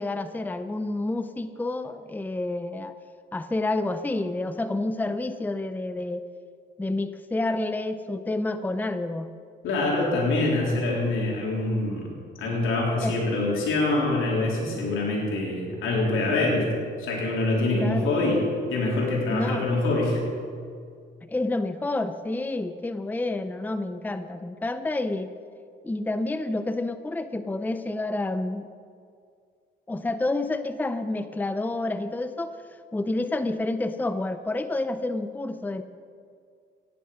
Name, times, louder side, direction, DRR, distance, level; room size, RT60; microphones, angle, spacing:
voice 1, 0.0-2.9 3.3-6.2 6.8-9.3 13.0-13.2 17.7-18.1 19.3-19.7 21.3-25.3 25.8-28.7 29.9-32.6 32.9-35.8, left 2 dB, 10° left, 10 dB, 0.6 m, -29 dB
voice 2, 9.6-12.1 12.4-16.7 17.0-18.4 18.7-20.2, left 2 dB, 85° left, -3 dB, 3.8 m, -25 dB
15.5 x 10.5 x 5.3 m, 2.2 s
cardioid pair, 90°, 20 cm